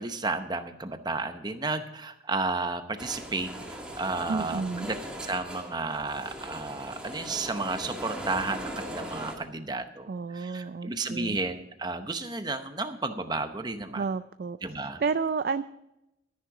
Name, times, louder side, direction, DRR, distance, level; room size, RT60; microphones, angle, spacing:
voice 1, 0.0-3.5 4.0-5.0 5.2-14.0 14.6-15.0, right 3 dB, 20° right, 9 dB, 0.8 m, -32 dB
sound 1, 3.0-9.4, right 1 dB, 5° right, 1.6 m, -39 dB
voice 2, 4.3-4.9 10.1-11.4 13.9-14.6 15.0-15.6, right 5 dB, 50° right, 12 dB, 0.3 m, -30 dB
13.0 x 10.0 x 4.9 m, 0.90 s
head